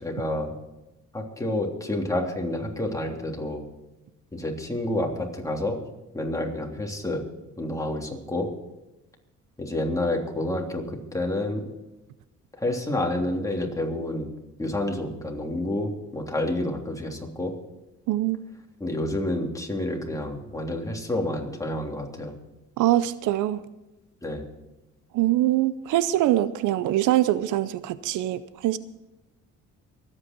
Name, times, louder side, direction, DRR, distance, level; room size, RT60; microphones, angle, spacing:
voice 1, 0.0-0.5 1.1-3.6 4.3-5.8 6.1-7.2 7.6-8.5 9.6-11.7 12.6-14.3 14.6-17.6 18.8-22.3 24.2-24.5, left 1 dB, 10° left, 0 dB, 3.2 m, -29 dB
voice 2, 18.1-18.4 22.8-23.6 25.1-28.8, right 14 dB, 85° right, 16 dB, 0.6 m, -23 dB
24.0 x 9.0 x 4.5 m, 1.0 s
cardioid pair, 90°, 30 cm